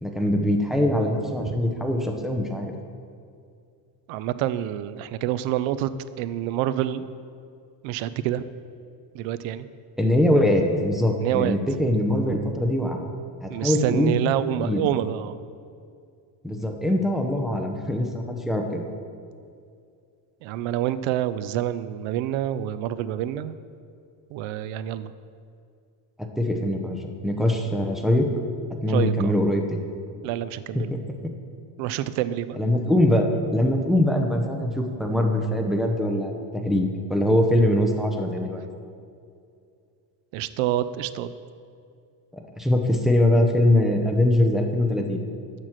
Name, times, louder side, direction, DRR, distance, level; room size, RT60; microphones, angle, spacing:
voice 1, 0.0-2.7 10.0-13.0 13.4-14.2 14.6-14.9 16.4-18.8 26.2-28.3 28.8-29.8 30.7-31.0 32.6-38.6 42.3-45.2, left 1 dB, ahead, 2 dB, 0.6 m, -22 dB
voice 2, 4.1-5.9 6.2-7.1 7.8-8.4 9.1-9.7 11.2-11.6 11.9-12.0 13.5-15.4 20.4-23.5 24.3-25.1 28.9-29.3 30.2-30.9 31.8-32.6 40.3-41.3, right 12 dB, 80° right, 14 dB, 0.6 m, -27 dB
7.6 x 6.2 x 5.8 m, 2.3 s
cardioid pair, 135°, 46 cm